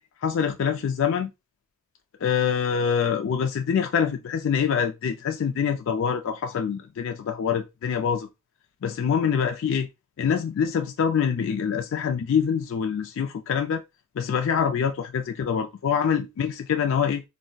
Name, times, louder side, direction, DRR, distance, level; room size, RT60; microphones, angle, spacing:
voice 1, 0.2-1.3 2.2-8.3 8.8-9.9 10.2-13.8 14.2-17.2, left 7 dB, 65° left, 0.3 m, -25 dB
3.8 x 2.0 x 2.2 m
head